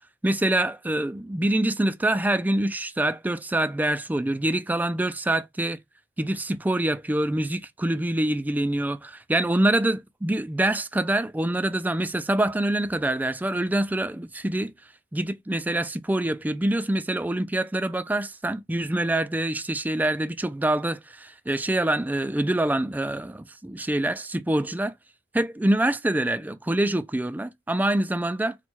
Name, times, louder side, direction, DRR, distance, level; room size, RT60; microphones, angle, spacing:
voice 1, 0.2-5.8 6.2-14.7 15.1-24.9 25.3-28.5, right 1 dB, 10° right, 0.3 m, -25 dB
4.2 x 2.2 x 4.4 m
head